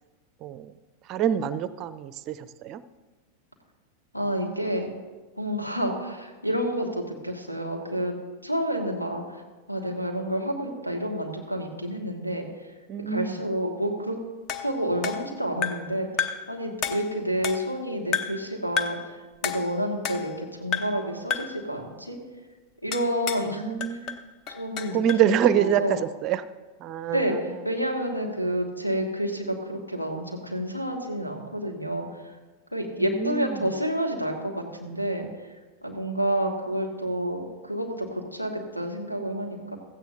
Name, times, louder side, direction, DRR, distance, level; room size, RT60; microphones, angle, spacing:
voice 1, 0.4-0.7 1.1-2.8 12.9-13.4 23.5-24.2 24.9-26.5 26.8-27.4 33.0-33.6, right 9 dB, 35° right, 15 dB, 0.4 m, -26 dB
voice 2, 4.1-4.9 5.4-8.1 8.4-9.4 9.7-12.5 13.1-14.2 14.6-22.2 22.8-23.6 24.5-26.0 27.1-32.1 32.7-35.3 35.8-39.8, equal, 90° left, 2 dB, 1.8 m, -29 dB
sound 1, 14.5-15.9 16.2-16.5 16.8-17.8 18.1-18.5 18.8-19.1 19.4-20.4 20.7-21.0 21.3-21.6 22.9-23.5 23.8-25.3, left 7 dB, 35° left, 0.8 m, -31 dB
16.0 x 14.5 x 2.6 m, 1.3 s
figure-of-eight pair, 90°, 0 cm